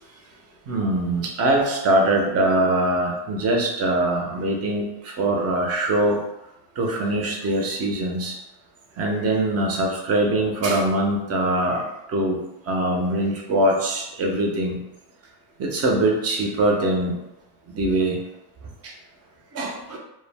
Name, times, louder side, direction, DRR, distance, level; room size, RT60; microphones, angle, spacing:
voice 1, 0.7-6.2 6.8-8.3 9.0-11.8 12.1-12.4 12.7-14.8 15.6-17.1 17.7-18.2 18.8-18.9 19.5-20.0, right 1 dB, 30° right, 1 dB, 0.6 m, -22 dB
2.3 x 2.1 x 3.3 m, 0.89 s
supercardioid pair, 115°, 47 cm